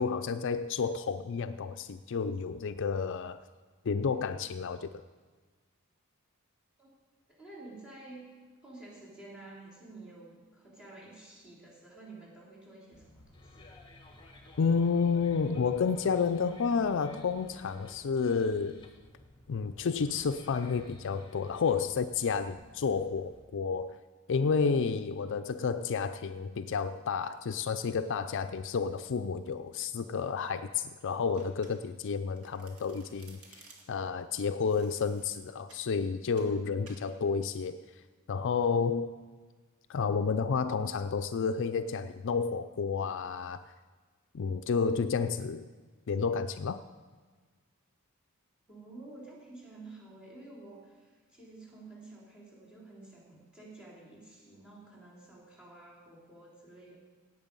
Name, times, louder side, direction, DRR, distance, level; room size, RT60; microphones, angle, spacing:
voice 1, 0.0-3.4 3.8-4.9 14.6-18.9 19.5-24.0 24.3-37.8 38.3-39.1 39.9-43.6 44.3-45.7 46.1-46.8, left 5 dB, 60° left, 11 dB, 0.4 m, -30 dB
voice 2, 7.3-8.3 8.6-13.6 48.7-57.0, right 2 dB, 5° right, -4 dB, 3.8 m, -50 dB
sound 1, 12.9-23.4, left 1 dB, 25° left, 1.5 m, -55 dB
Domestic sounds home sounds, 31.4-32.1 32.4-34.1 34.7-35.9 36.4-36.6 36.9-37.1, right 3 dB, 90° right, 2.3 m, -57 dB
17.5 x 8.2 x 5.4 m, 1.4 s
head